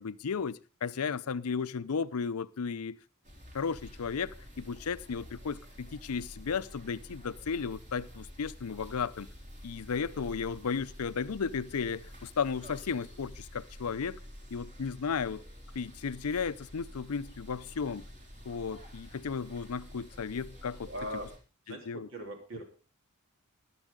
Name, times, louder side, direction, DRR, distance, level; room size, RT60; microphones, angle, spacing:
voice 1, 0.0-3.0 3.5-9.3 9.6-14.2 14.5-15.4 15.7-18.1 18.5-20.9 21.9-22.1, left 5 dB, 75° left, 0.5 m, -34 dB
sound 1, 3.2-21.4, equal, 35° right, 3.3 m, -49 dB
voice 2, 20.8-21.3 21.7-22.6, right 1 dB, 65° right, 3.5 m, -40 dB
16.0 x 11.0 x 3.7 m
head